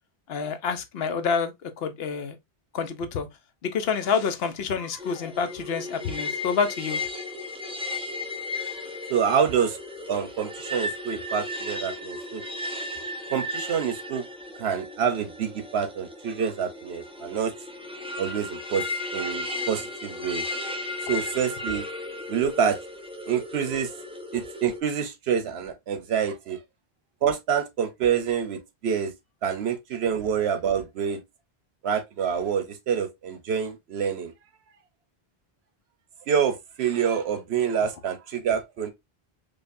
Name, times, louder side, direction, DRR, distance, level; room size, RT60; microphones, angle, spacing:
voice 1, 0.3-2.4 2.7-3.3 3.6-7.0 21.1-21.2 37.8-37.9, left 6 dB, 75° left, 0.9 m, -28 dB
sound 1, 5.0-24.8, left 2 dB, 5° right, 0.5 m, -35 dB
voice 2, 9.1-9.8 10.1-12.4 13.3-14.2 14.6-17.5 18.2-18.8 19.1-20.4 21.0-21.8 22.3-22.8 23.3-23.9 24.3-26.6 27.2-29.1 29.4-31.2 31.8-34.3 36.3-38.9, right 7 dB, 85° right, 1.0 m, -27 dB
5.1 x 2.3 x 2.5 m
omnidirectional pair, 1.0 m